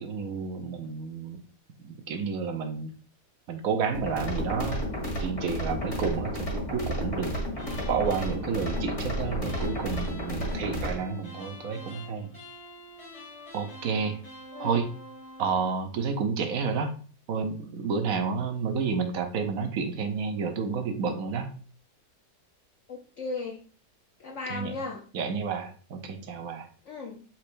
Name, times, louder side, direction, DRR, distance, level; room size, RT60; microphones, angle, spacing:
voice 1, 0.0-1.4 1.8-2.9 3.5-4.8 5.2-7.3 7.9-12.3 13.5-14.2 14.6-14.9 15.4-16.9 17.3-21.6 24.5-24.7 25.1-26.7, right 5 dB, 60° right, 6 dB, 1.0 m, -30 dB
sound 1, 3.9-11.0, equal, 40° left, 2.1 m, -32 dB
sound 2, 7.6-15.8, left 1 dB, 20° left, 2.0 m, -46 dB
voice 2, 22.9-23.6 24.2-25.0 26.9-27.2, left 3 dB, 65° left, 1 dB, 0.7 m, -36 dB
4.8 x 4.4 x 2.5 m, 0.40 s
omnidirectional pair, 1.9 m